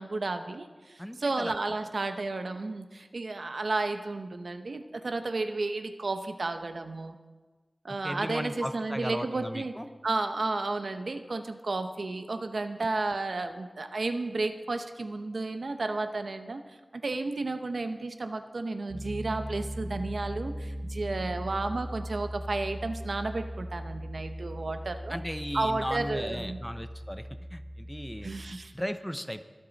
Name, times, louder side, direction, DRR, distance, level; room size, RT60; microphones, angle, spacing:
voice 1, 0.0-7.2 7.8-9.7 10.0-16.6 16.9-25.2 25.5-26.6 28.2-28.7, right 3 dB, 80° right, 7 dB, 0.9 m, -32 dB
voice 2, 1.0-1.5 8.0-9.9 25.1-28.3 28.7-29.4, equal, 5° left, 9 dB, 0.9 m, -36 dB
Piano, 18.9-28.5, equal, 55° right, 2.0 m, -39 dB
24.0 x 9.1 x 4.1 m, 1.3 s
wide cardioid pair, 70°, 0 cm